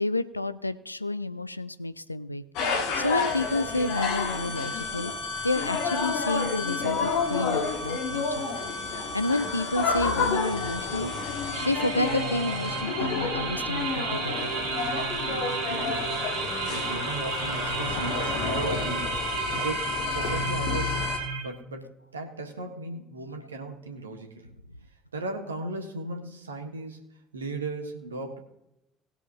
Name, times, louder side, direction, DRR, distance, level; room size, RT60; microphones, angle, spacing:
voice 1, 0.0-2.4 2.7-5.1 5.4-8.5 8.9-11.1 11.4-14.5, left 2 dB, 85° left, 14 dB, 0.4 m, -30 dB
sound 1, 2.6-21.2, left 5 dB, 55° left, 1.8 m, -30 dB
sound 2, 11.5-21.4, right 4 dB, 60° right, 2.0 m, -32 dB
voice 2, 15.2-16.1 16.7-19.2 19.5-21.1 21.4-24.5 25.1-27.0 27.3-28.4, right 2 dB, 80° right, 4 dB, 1.6 m, -36 dB
19.5 x 8.0 x 2.9 m, 0.86 s
figure-of-eight pair, 60°, 0 cm